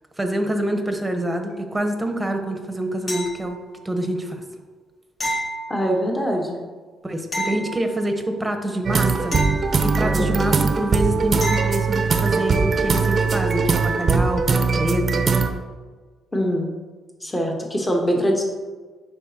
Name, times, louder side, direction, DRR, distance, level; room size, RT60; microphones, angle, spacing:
voice 1, 0.2-3.6 3.8-4.4 7.0-9.4 9.8-15.2, right 1 dB, 15° right, 5 dB, 0.9 m, -26 dB
sound 1, 3.1-3.8 5.2-6.3 7.3-8.3 9.3-10.3 11.4-12.0 14.8-14.9, equal, 40° left, 1.5 m, -30 dB
voice 2, 5.7-6.6 10.0-10.3 16.3-16.7 17.2-18.4, equal, 15° left, 0 dB, 1.1 m, -23 dB
sound 2, 8.8-15.5, right 4 dB, 45° right, 0.6 m, -20 dB
9.9 x 4.1 x 2.8 m, 1.4 s
cardioid pair, 90°, 0 cm